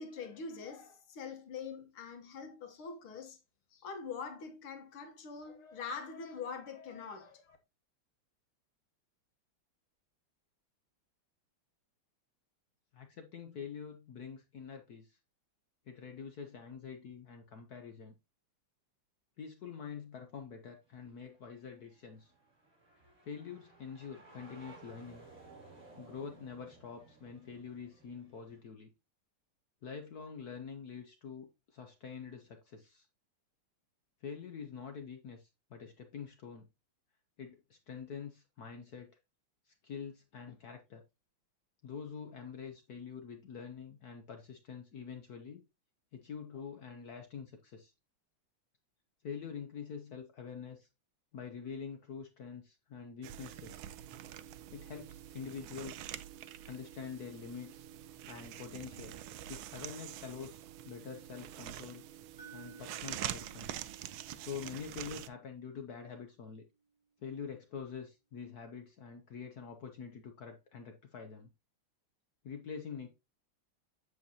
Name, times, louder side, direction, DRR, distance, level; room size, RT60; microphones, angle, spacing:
voice 1, 0.0-3.4 3.7-7.6, left 5 dB, 80° left, 2.1 m, -44 dB
voice 2, 12.9-15.2 15.9-18.2 19.4-22.3 23.3-25.3 26.0-28.9 29.8-33.1 34.2-36.7 37.4-39.2 39.7-41.0 41.8-45.6 46.1-47.9 49.2-50.9 51.3-53.9 54.7-56.1 56.6-57.9 58.3-59.2 59.5-62.1 62.5-63.7 64.4-66.6 67.2-71.5 72.4-73.1, left 6 dB, 55° left, 1.2 m, -46 dB
sound 1, 20.8-28.6, right 3 dB, 40° right, 3.8 m, -58 dB
sound 2, 53.2-65.3, right 12 dB, 80° right, 1.4 m, -45 dB
sound 3, 62.4-66.4, right 5 dB, 15° right, 4.0 m, -58 dB
7.9 x 7.3 x 2.8 m
omnidirectional pair, 2.3 m